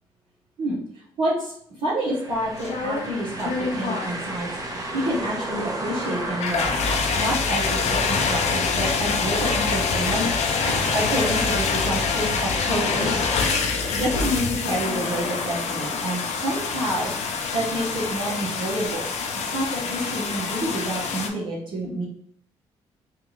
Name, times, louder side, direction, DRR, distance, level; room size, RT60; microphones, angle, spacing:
voice 1, 1.2-6.8 7.2-10.4 10.6-13.4 13.7-17.1 17.5-19.0 19.4-22.0, right 1 dB, 70° right, -8 dB, 1.0 m, -28 dB
sound 1, 2.0-11.8, right 1 dB, 30° right, 1.0 m, -35 dB
sound 2, 2.3-21.3, left 5 dB, 70° left, 0.5 m, -26 dB
sound 3, 7.0-7.3 7.6-9.3 9.8-14.4 14.7-16.6, equal, 90° right, 0.6 m, -38 dB
3.5 x 2.5 x 3.1 m, 0.66 s
supercardioid pair, 50°, 12 cm